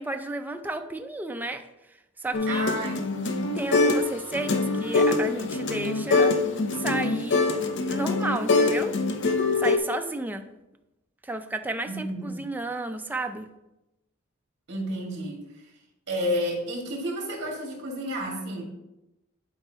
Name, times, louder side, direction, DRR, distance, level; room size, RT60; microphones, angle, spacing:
voice 1, 0.0-1.7 2.2-2.7 3.6-6.3 6.7-7.5 7.9-8.9 9.6-10.5 11.2-13.5, right 2 dB, 10° right, 6 dB, 0.4 m, -32 dB
sound 1, 2.3-4.1 4.3-9.8, left 3 dB, 60° left, 0.6 m, -24 dB
voice 2, 2.5-3.5 11.9-12.4 14.7-15.4 16.1-18.6, equal, 55° right, -1 dB, 2.2 m, -31 dB
11.0 x 4.5 x 2.9 m, 0.93 s
head